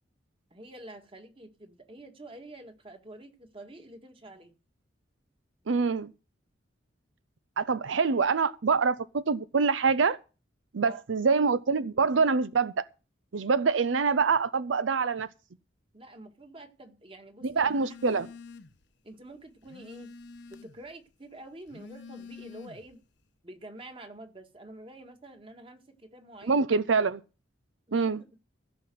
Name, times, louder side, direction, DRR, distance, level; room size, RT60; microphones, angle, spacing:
voice 1, 0.5-4.5 10.8-11.0 15.9-17.7 18.1-18.2 19.0-20.1 20.5-23.0 23.4-26.6 27.9-28.4, right 1 dB, 30° right, 1.8 m, -47 dB
voice 2, 5.7-6.1 7.6-10.2 10.7-12.8 13.3-15.3 17.4-18.3 26.5-27.2 27.9-28.2, right 5 dB, 85° right, 0.6 m, -25 dB
Telephone, 17.6-18.9 19.2-20.9 21.5-23.0, left 4 dB, 65° left, 1.0 m, -48 dB
15.5 x 5.8 x 7.6 m
head